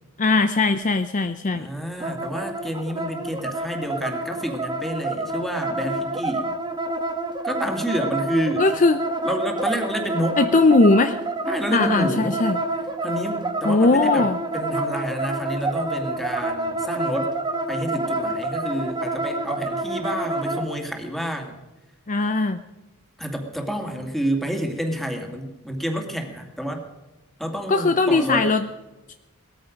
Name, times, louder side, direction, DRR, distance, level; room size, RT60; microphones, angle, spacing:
voice 1, 0.2-1.7 8.6-9.0 10.4-11.2 11.7-12.6 13.6-14.4 22.1-22.6 27.7-28.6, left 3 dB, 35° left, 9 dB, 0.6 m, -19 dB
voice 2, 1.5-6.5 7.4-8.6 9.2-10.4 11.5-12.4 13.0-14.3 14.5-17.4 17.7-21.6 23.2-26.8 27.4-28.5, equal, ahead, 3 dB, 2.3 m, -29 dB
sound 1, 2.0-20.6, right 2 dB, 20° right, 1.4 m, -28 dB
19.0 x 14.0 x 5.2 m, 1.0 s
head